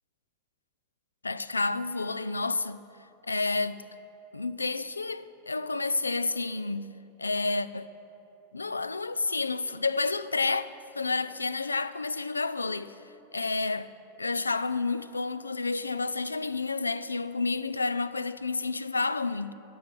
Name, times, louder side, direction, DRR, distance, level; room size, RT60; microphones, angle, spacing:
voice 1, 1.2-2.8 3.2-3.9 4.3-6.9 7.2-7.9 8.5-13.0 13.3-13.9 14.2-19.5, left 3 dB, 80° left, 0.3 m, -30 dB
13.5 x 6.2 x 8.6 m
figure-of-eight pair, 90°, 0 cm